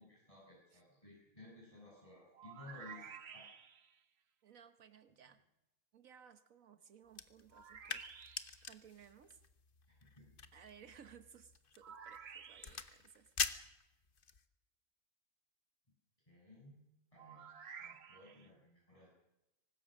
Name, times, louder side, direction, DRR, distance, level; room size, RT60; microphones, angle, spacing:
voice 1, 0.0-3.5 10.2-10.3 16.3-16.8 17.1-17.5 17.8-19.1, left 2 dB, 25° left, -5 dB, 7.1 m, -57 dB
sound 1, 2.3-4.0 7.5-8.7 11.8-13.0 17.1-18.5, right 7 dB, 50° right, 1.3 m, -53 dB
voice 2, 4.4-5.4 5.9-8.0 8.6-9.4 10.5-13.3, right 8 dB, 75° right, 10 dB, 1.4 m, -60 dB
sound 2, 7.1-14.5, left 5 dB, 40° left, 1.2 m, -45 dB
24.5 x 19.5 x 6.5 m, 0.94 s
omnidirectional pair, 1.5 m